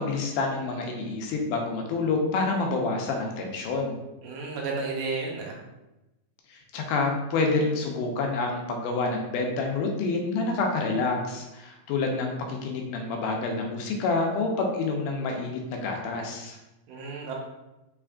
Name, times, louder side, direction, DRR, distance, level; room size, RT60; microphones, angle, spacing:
voice 1, 0.0-4.0 6.5-16.6, left 3 dB, 80° left, 1 dB, 2.2 m, -28 dB
voice 2, 4.2-5.6 16.9-17.3, right 3 dB, 85° right, -1 dB, 2.4 m, -32 dB
5.6 x 3.4 x 2.4 m, 0.98 s
omnidirectional pair, 3.9 m